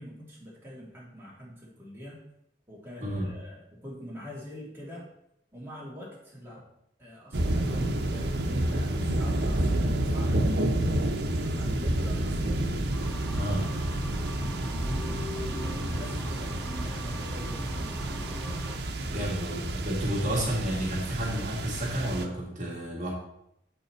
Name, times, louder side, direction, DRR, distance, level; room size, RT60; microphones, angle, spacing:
voice 1, 0.0-2.2 2.7-5.1 5.5-6.6 7.0-10.4 11.3-12.7 13.1-13.8 14.6-18.3 19.1-19.3, left 1 dB, 15° right, -6 dB, 2.4 m, -44 dB
sound 1, 7.3-22.3, right 1 dB, 70° right, 0.8 m, -29 dB
sound 2, 12.9-18.8, equal, 15° left, 0.6 m, -44 dB
voice 2, 13.4-13.7 19.0-23.1, right 1 dB, 40° right, -4 dB, 2.1 m, -31 dB
8.2 x 5.4 x 4.4 m, 0.77 s
head